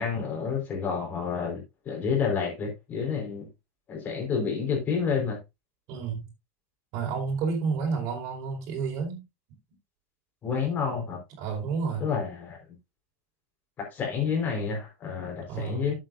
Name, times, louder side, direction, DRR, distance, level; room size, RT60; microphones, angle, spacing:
voice 1, 0.0-3.5 3.9-5.4 10.4-11.2 12.0-12.6 13.8-15.9, left 6 dB, 25° left, 4.6 m, -29 dB
voice 2, 5.9-6.3 6.9-9.2 11.4-12.1 15.5-15.9, right 5 dB, 50° right, 4.8 m, -30 dB
11.0 x 8.1 x 2.6 m
supercardioid pair, 155°, 7 cm